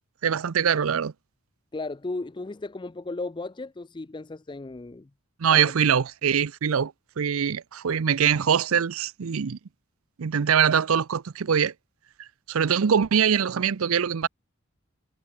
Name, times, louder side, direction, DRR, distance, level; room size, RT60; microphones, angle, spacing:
voice 1, 0.2-1.1 5.4-6.9 7.2-9.6 10.2-11.7 12.5-14.3, right 7 dB, 85° right, 0.5 m, -23 dB
voice 2, 1.7-5.1 5.5-5.7, left 3 dB, 20° left, 0.4 m, -35 dB
head